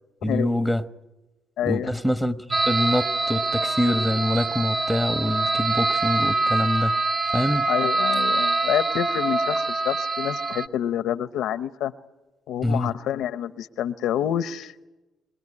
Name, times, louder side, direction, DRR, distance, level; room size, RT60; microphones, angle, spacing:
voice 1, 0.2-0.8 1.6-6.9 7.3-7.7 12.6-12.9, left 1 dB, 5° right, 1.2 m, -25 dB
voice 2, 1.6-1.9 7.7-11.9 12.5-14.7, left 10 dB, 85° left, 0.8 m, -27 dB
sound 1, 2.5-10.7, right 3 dB, 35° right, 1.0 m, -24 dB
25.5 x 19.0 x 9.9 m
cardioid pair, 90°, 0 cm